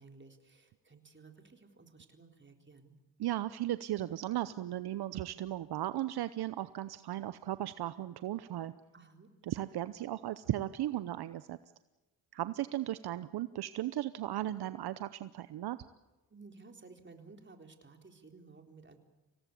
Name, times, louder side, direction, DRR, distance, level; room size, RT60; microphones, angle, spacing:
voice 1, 0.0-2.9 8.9-9.3 16.3-19.0, right 4 dB, 25° right, 5 dB, 3.9 m, -56 dB
voice 2, 3.2-8.7 9.4-11.6 12.3-15.8, right 13 dB, 65° right, 14 dB, 0.9 m, -36 dB
26.0 x 18.0 x 8.5 m, 1.1 s
cardioid pair, 70°, 41 cm